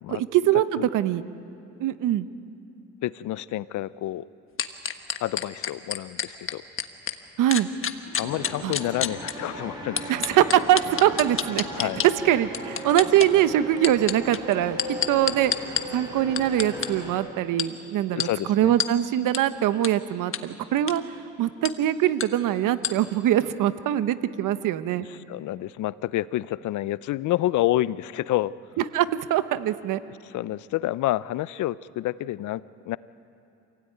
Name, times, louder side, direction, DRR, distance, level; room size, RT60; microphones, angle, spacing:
voice 1, 0.1-1.2 1.8-2.3 7.4-7.7 8.6-8.7 10.1-11.9 12.2-15.5 15.9-21.0 21.4-25.0 28.9-30.0, right 12 dB, 75° right, 12 dB, 1.0 m, -23 dB
voice 2, 3.0-4.3 5.2-6.6 8.2-10.1 11.7-12.0 18.1-18.7 25.1-28.5 30.2-33.0, left 15 dB, 65° left, 19 dB, 0.6 m, -28 dB
sound 1, 4.6-7.1 7.5-9.3 10.0-12.1 12.5-13.3 13.8-15.8 16.3-16.9 17.6-17.7 18.2-18.3 18.8-18.9 19.3-19.4 19.8-19.9 20.3-20.4 20.8-21.0 21.6-21.7 22.2-22.3 22.8-22.9, left 8 dB, 40° left, 1.3 m, -27 dB
sound 2, 8.2-17.1, equal, 10° right, 7.6 m, -37 dB
27.5 x 17.0 x 9.3 m, 2.7 s
cardioid pair, 100°, 32 cm